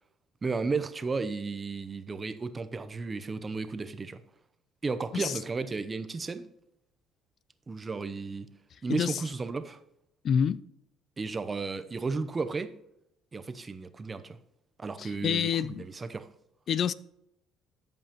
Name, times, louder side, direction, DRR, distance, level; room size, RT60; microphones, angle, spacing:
voice 1, 0.4-4.2 4.8-6.5 7.7-8.5 8.8-9.8 11.2-12.7 13.3-14.4 14.8-16.3, right 4 dB, 30° right, 0.8 m, -33 dB
voice 2, 8.9-9.2 10.2-10.6 15.0-15.8 16.7-16.9, left 8 dB, 55° left, 0.4 m, -27 dB
14.0 x 5.4 x 3.0 m
supercardioid pair, 80°, 0 cm